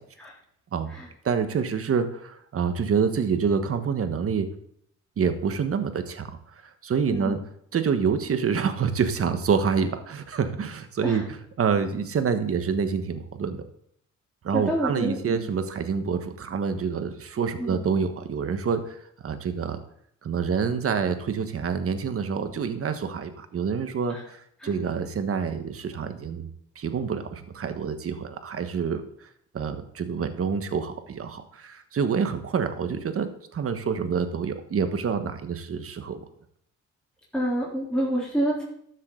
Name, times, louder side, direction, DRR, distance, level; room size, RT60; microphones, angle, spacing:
voice 1, 1.2-4.5 5.2-6.4 6.6-7.4 7.7-11.2 11.6-13.6 14.4-19.8 20.2-26.5 26.7-29.3 29.5-36.2, right 6 dB, 50° right, 9 dB, 1.4 m, -27 dB
voice 2, 14.5-15.4 17.6-17.8 24.1-24.2 24.6-24.7 37.3-38.6, right 1 dB, 5° left, -6 dB, 3.6 m, -27 dB
13.0 x 7.5 x 3.9 m, 0.69 s
cardioid pair, 90°, 30 cm